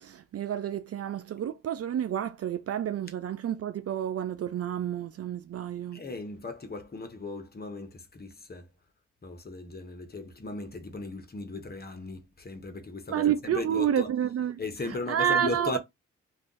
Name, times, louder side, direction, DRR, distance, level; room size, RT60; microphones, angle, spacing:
voice 1, 0.0-6.0 13.1-14.6 15.1-15.8, right 9 dB, 45° right, 0.5 m, -29 dB
voice 2, 5.9-8.7 9.2-14.1 14.6-15.8, left 3 dB, 30° left, 0.9 m, -37 dB
2.5 x 2.4 x 3.7 m
supercardioid pair, 45°, 33 cm